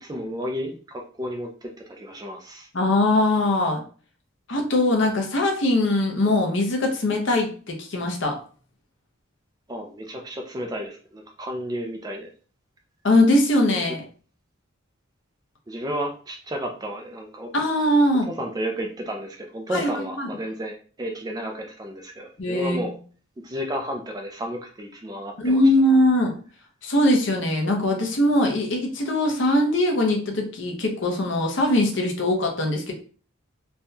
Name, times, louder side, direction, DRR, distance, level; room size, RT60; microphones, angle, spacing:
voice 1, 0.0-2.7 9.7-12.3 15.7-17.5 18.3-23.0 23.4-25.6, equal, 20° right, 3 dB, 0.4 m, -32 dB
voice 2, 2.7-3.8 4.5-8.4 13.0-14.0 17.5-18.3 19.7-20.3 22.4-22.8 25.4-26.3 26.8-32.9, left 1 dB, 60° left, 1 dB, 0.8 m, -21 dB
3.4 x 2.2 x 2.7 m, 0.40 s
head